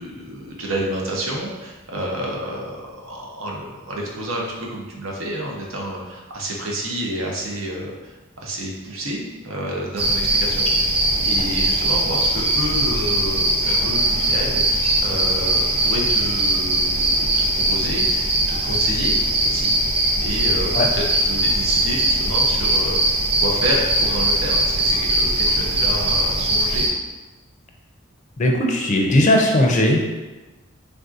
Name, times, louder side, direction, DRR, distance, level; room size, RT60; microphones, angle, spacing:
voice 1, 0.0-19.7 20.2-26.9, right 1 dB, 85° right, -2 dB, 0.7 m, -29 dB
sound 1, 10.0-26.9, right 1 dB, 30° right, 0.3 m, -20 dB
voice 2, 28.4-30.0, left 1 dB, 35° left, 1 dB, 0.4 m, -17 dB
3.4 x 2.6 x 2.4 m, 1.2 s
head